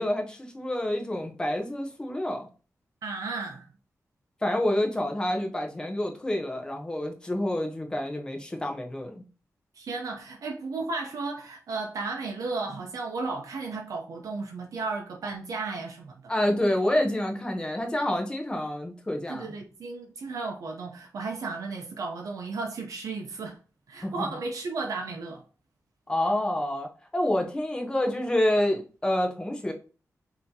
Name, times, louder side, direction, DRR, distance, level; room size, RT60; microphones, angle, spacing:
voice 1, 0.0-2.5 4.4-9.2 16.3-19.5 24.0-24.1 26.1-29.7, left 1 dB, 15° left, 0.8 m, -28 dB
voice 2, 3.0-3.7 9.8-16.3 19.3-23.6 23.9-25.4, right 3 dB, 85° right, 0.7 m, -34 dB
5.5 x 2.9 x 2.7 m
wide cardioid pair, 160°, 6 cm